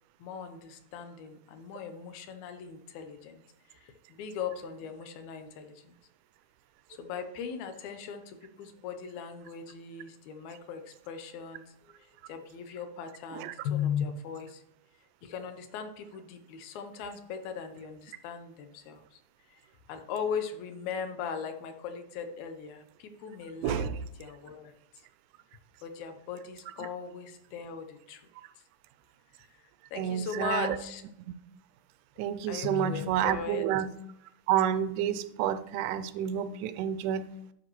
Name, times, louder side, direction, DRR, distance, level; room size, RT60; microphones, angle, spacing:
voice 1, 0.2-3.4 3.7-5.9 6.9-12.0 12.3-14.6 15.2-19.2 19.5-19.6 19.9-24.7 25.8-28.2 29.9-31.0 32.5-33.7, left 7 dB, 75° left, 8 dB, 2.0 m, -38 dB
voice 2, 23.6-24.0 30.0-30.8 32.2-33.9 34.5-37.3, right 10 dB, 85° right, 12 dB, 2.1 m, -29 dB
11.5 x 5.2 x 3.0 m, 0.79 s
omnidirectional pair, 3.8 m